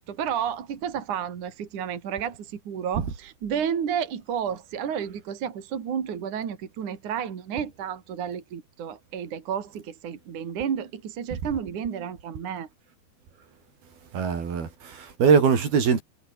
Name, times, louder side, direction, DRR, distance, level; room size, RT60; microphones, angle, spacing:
voice 1, 0.1-12.7, right 8 dB, 55° right, 4.0 m, -31 dB
voice 2, 14.1-16.0, right 6 dB, 80° right, 6.1 m, -22 dB
omnidirectional pair, 4.3 m